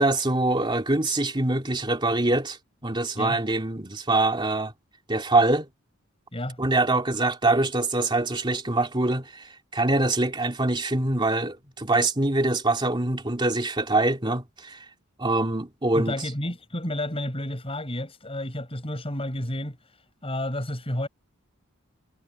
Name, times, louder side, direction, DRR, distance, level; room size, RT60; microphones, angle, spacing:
voice 1, 0.0-2.6 2.8-4.7 5.1-5.7 6.6-14.8 15.2-16.2, right 2 dB, 20° right, 2.7 m, -24 dB
voice 2, 15.9-20.0 20.2-21.1, left 1 dB, 30° left, 5.8 m, -31 dB
head